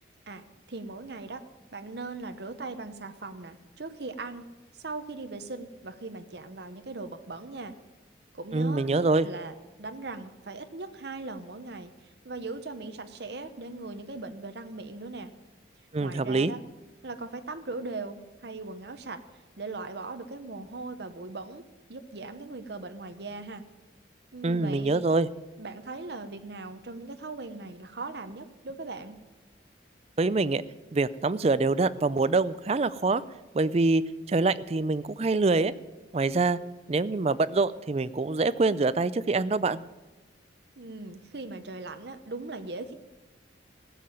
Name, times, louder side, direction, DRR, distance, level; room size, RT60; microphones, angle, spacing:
voice 1, 0.3-1.4 1.7-4.4 4.7-7.7 8.3-8.9 9.2-15.3 16.0-16.6 17.0-19.2 19.6-21.6 21.9-23.6 24.3-25.0 25.6-29.2 40.8-42.9, right 3 dB, 60° right, 8 dB, 0.9 m, -39 dB
voice 2, 8.5-9.3 15.9-16.5 24.4-25.3 30.2-30.6 30.9-33.2 33.5-34.0 34.3-35.7 36.1-36.6 36.9-39.8, right 3 dB, 35° right, 16 dB, 0.4 m, -25 dB
15.0 x 7.6 x 9.1 m, 1.2 s
head